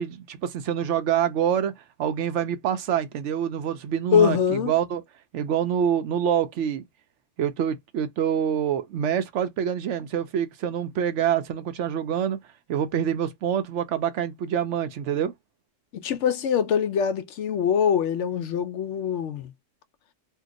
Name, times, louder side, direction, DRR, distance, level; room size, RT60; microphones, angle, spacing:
voice 1, 0.0-5.0 5.3-6.8 7.4-12.4 12.7-15.3, right 9 dB, 70° right, 0.9 m, -26 dB
voice 2, 4.1-4.7 15.9-19.5, left 8 dB, 70° left, 0.9 m, -23 dB
2.7 x 2.2 x 3.6 m
omnidirectional pair, 1.3 m